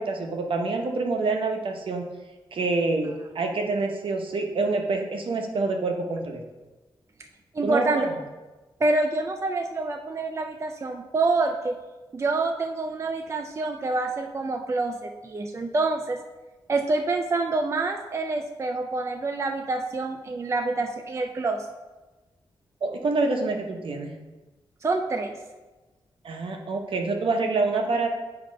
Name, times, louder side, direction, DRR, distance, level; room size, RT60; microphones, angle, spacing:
voice 1, 0.0-2.0 2.5-6.4 7.6-8.2 22.8-24.1 26.2-28.1, right 3 dB, 70° right, 3 dB, 0.9 m, -26 dB
voice 2, 7.5-8.1 8.8-11.8 12.1-16.2 16.7-21.7 24.8-25.3, right 3 dB, 30° right, 4 dB, 0.4 m, -27 dB
8.5 x 2.9 x 5.1 m, 1.2 s
wide cardioid pair, 125°, 9 cm